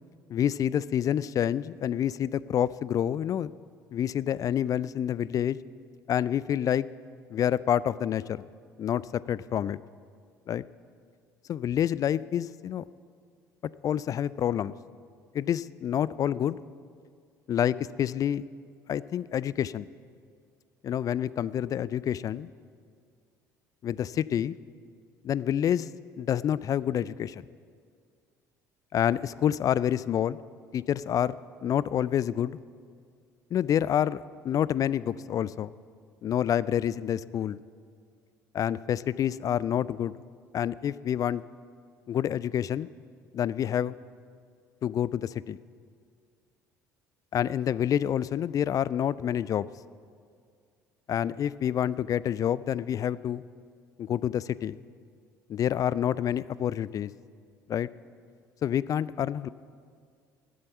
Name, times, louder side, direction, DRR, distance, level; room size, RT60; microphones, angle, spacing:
voice 1, 0.3-3.5 3.9-5.6 6.1-6.9 7.3-8.4 8.8-9.8 10.5-10.6 11.5-12.8 13.8-14.7 15.3-16.6 17.5-18.4 18.9-19.9 20.8-22.5 23.8-24.5 25.2-27.4 28.9-30.4 30.7-32.6 33.5-35.7 36.2-37.6 38.5-40.1 40.5-41.4 42.1-42.9 43.3-43.9 44.8-45.6 47.3-49.7 51.1-53.4 54.0-54.8 55.5-57.1 57.7-57.9 58.6-59.5, left 10 dB, 35° left, 19 dB, 0.3 m, -28 dB
13.0 x 8.8 x 8.0 m, 2.2 s
figure-of-eight pair, 55°, 10 cm